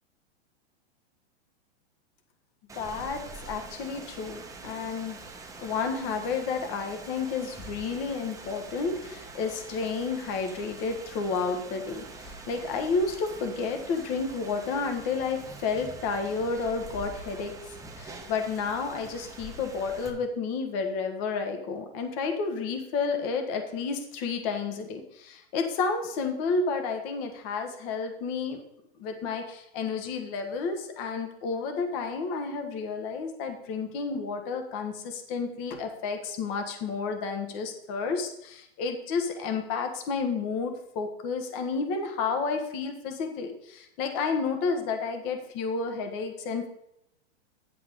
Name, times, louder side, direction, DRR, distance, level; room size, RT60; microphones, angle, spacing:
voice 1, 2.7-3.2 3.5-5.2 5.6-17.5 18.0-28.6 29.0-46.7, left 4 dB, 45° left, 5 dB, 1.6 m, -31 dB
Rain, 2.7-20.1, right 3 dB, 10° right, 1.0 m, -44 dB
8.9 x 7.9 x 3.7 m, 0.79 s
hypercardioid pair, 125°, 33 cm